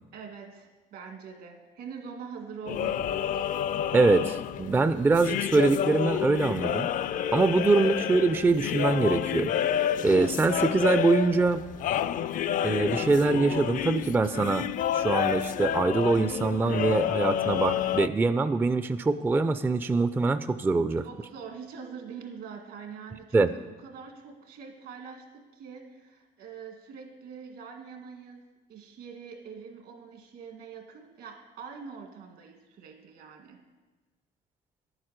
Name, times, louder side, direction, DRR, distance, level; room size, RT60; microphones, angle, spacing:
voice 1, 0.1-3.5 7.4-7.7 21.0-28.4 28.7-33.6, right 6 dB, 75° right, 4 dB, 2.0 m, -44 dB
sound 1, 2.7-18.1, left 10 dB, 50° left, 0.4 m, -29 dB
voice 2, 3.9-6.9 7.3-9.5 10.0-11.6 12.6-14.7 14.9-21.0 23.3-23.5, right 3 dB, 10° right, 11 dB, 0.3 m, -24 dB
11.0 x 8.8 x 6.5 m, 1.2 s
cardioid pair, 125°, 17 cm